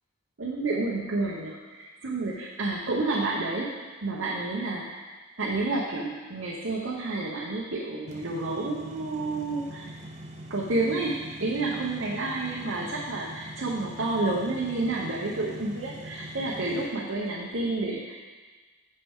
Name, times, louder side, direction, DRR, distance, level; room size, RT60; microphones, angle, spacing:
voice 1, 0.4-3.7 4.0-5.1 5.4-9.9 10.5-18.2, right 2 dB, 65° right, -4 dB, 0.9 m, -30 dB
sound 1, 8.1-16.9, right 1 dB, 35° right, 0.8 m, -43 dB
8.7 x 6.7 x 3.6 m, 1.4 s
head